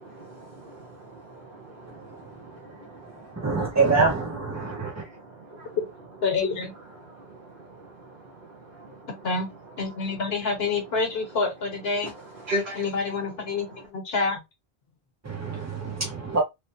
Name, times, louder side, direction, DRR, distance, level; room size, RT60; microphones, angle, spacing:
voice 1, 0.0-3.5 4.6-5.8 7.0-9.1 12.0-12.1 12.4-12.9, equal, 55° right, 1.0 m, -39 dB
voice 2, 3.4-5.1 15.2-16.4, right 4 dB, 25° right, 0.4 m, -25 dB
voice 3, 6.2-6.7 9.2-9.5 9.8-12.1 12.7-14.4, left 4 dB, 75° left, 1.1 m, -27 dB
3.1 x 2.1 x 2.6 m
omnidirectional pair, 1.0 m